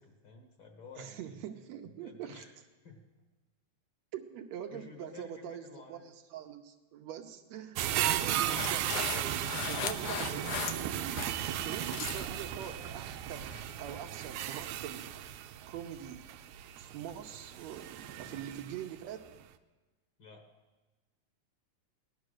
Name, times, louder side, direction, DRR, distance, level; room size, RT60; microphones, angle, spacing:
voice 1, 0.0-1.4 2.0-2.5 2.8-3.1 4.7-6.1 8.7-9.1 10.3-10.5 12.1-12.3 18.2-18.4 20.2-20.5, left 4 dB, 50° left, 4 dB, 1.7 m, -52 dB
voice 2, 1.0-2.4 4.1-8.9 9.3-11.2 11.6-15.1 15.7-16.3 16.8-17.9 18.2-19.2, right 9 dB, 75° right, 5 dB, 2.0 m, -44 dB
sound 1, 7.8-19.0 19.4-19.5, right 11 dB, 90° right, 2.1 m, -36 dB
sound 2, 8.6-11.3 11.7-12.3 12.6-12.9 13.4-13.6, left 8 dB, 70° left, 1.8 m, -38 dB
17.0 x 11.5 x 6.4 m, 1.2 s
omnidirectional pair, 3.3 m